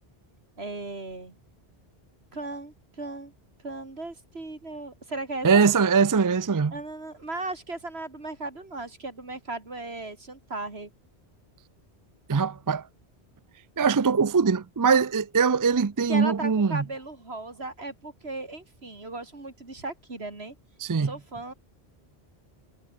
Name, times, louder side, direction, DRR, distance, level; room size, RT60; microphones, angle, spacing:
voice 1, 0.6-1.4 2.3-3.3 3.6-5.6 6.7-10.9 16.1-20.6 21.0-21.5, right 2 dB, 75° right, 3.9 m, -36 dB
voice 2, 5.4-6.7 12.3-12.8 13.8-16.8 20.8-21.1, right 5 dB, 30° right, 0.4 m, -22 dB
omnidirectional pair, 1.1 m